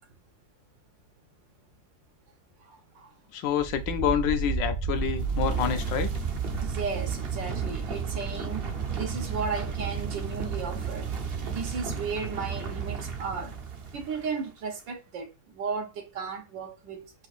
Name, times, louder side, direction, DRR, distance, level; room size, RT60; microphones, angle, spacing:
voice 1, 2.6-3.1 6.6-11.2 11.4-13.5 13.9-17.1, right 5 dB, 85° right, 1.8 m, -35 dB
voice 2, 3.3-6.1, left 9 dB, 85° left, 1.4 m, -27 dB
sound 1, 3.5-14.3, right 5 dB, 50° right, 0.7 m, -32 dB
4.7 x 2.6 x 4.1 m
omnidirectional pair, 1.9 m